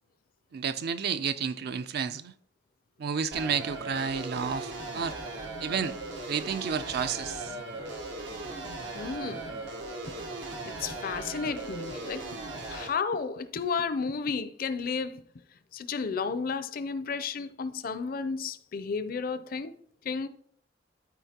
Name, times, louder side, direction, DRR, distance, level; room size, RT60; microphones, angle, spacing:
voice 1, 0.5-2.3 3.0-5.2 5.6-6.0 6.3-7.5, right 6 dB, 60° right, 0.4 m, -31 dB
sound 1, 3.3-12.9, right 2 dB, 85° right, 1.2 m, -38 dB
voice 2, 8.9-9.6 10.1-10.2 10.6-12.4 12.7-15.2 15.7-19.8 20.0-20.3, left 5 dB, 50° left, 0.5 m, -32 dB
12.5 x 4.5 x 2.9 m
head